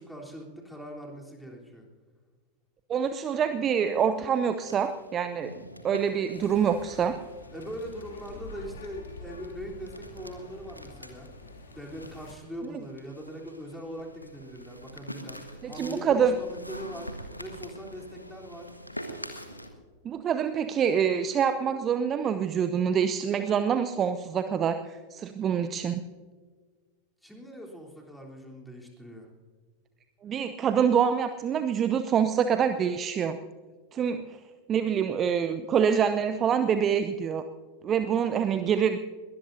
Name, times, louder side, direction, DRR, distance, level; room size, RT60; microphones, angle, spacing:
voice 1, 0.0-1.8 7.5-11.3 11.7-17.1 17.4-18.7 27.2-29.3, equal, ahead, -2 dB, 3.6 m, -41 dB
voice 2, 2.9-5.5 5.8-7.2 15.6-16.3 20.0-26.0 30.2-33.4 33.9-34.4 34.7-37.4 37.8-39.0, right 7 dB, 25° right, 10 dB, 0.7 m, -26 dB
sound 1, 3.0-19.7, equal, 85° left, 1.5 m, -46 dB
sound 2, 6.3-12.3, left 2 dB, 65° left, 3.0 m, -47 dB
22.0 x 19.0 x 2.7 m, 1.5 s
figure-of-eight pair, 90°, 0 cm